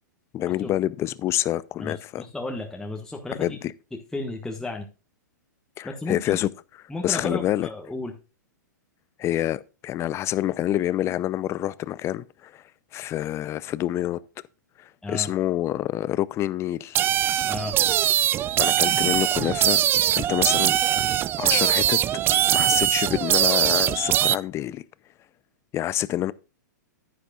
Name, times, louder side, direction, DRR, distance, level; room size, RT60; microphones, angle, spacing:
voice 1, 0.3-2.3 3.4-3.7 5.8-6.5 7.0-7.7 9.2-12.6 12.9-14.2 14.8-17.1 18.6-19.8 20.1-20.8 21.4-22.0 22.5-24.8 25.7-26.3, left 13 dB, 25° left, 0.5 m, -27 dB
voice 2, 1.8-3.5 3.9-4.8 5.8-6.4 6.9-8.1 15.0-15.3 17.5-17.7, left 2 dB, 5° left, 1.4 m, -33 dB
sound 1, 16.9-24.4, right 12 dB, 20° right, 0.3 m, -22 dB
10.5 x 10.0 x 2.4 m
hypercardioid pair, 120°, 10 cm